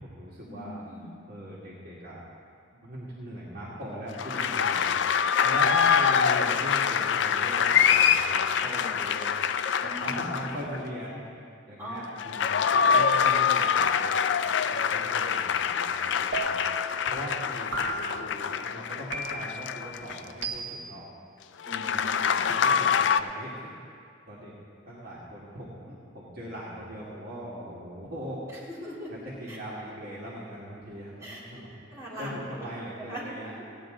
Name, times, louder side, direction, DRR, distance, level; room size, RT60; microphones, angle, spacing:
voice 1, 0.0-0.8 1.3-2.2 2.7-5.0 5.4-9.3 9.8-11.2 11.7-12.6 12.9-14.3 14.7-16.7 17.1-21.1 21.7-22.1 22.5-23.7 24.3-24.5 24.9-28.4 29.1-33.5, equal, 50° right, -7 dB, 2.0 m, -40 dB
voice 2, 0.5-1.2 4.3-4.5 9.8-10.7 11.8-12.1 21.7-22.6 23.0-23.1 28.7-29.1 29.5-29.6 29.9-30.0 31.2-31.4 31.9-32.7 33.0-33.2, equal, 15° right, -9 dB, 3.5 m, -41 dB
sound 1, 4.2-10.8 12.1-20.4 21.6-23.2, left 7 dB, 65° left, 0.4 m, -25 dB
sound 2, 16.3-16.9 17.7-18.3 19.1-19.7 20.4-21.0, right 2 dB, 70° right, 1.0 m, -34 dB
16.5 x 9.6 x 3.9 m, 2.3 s
head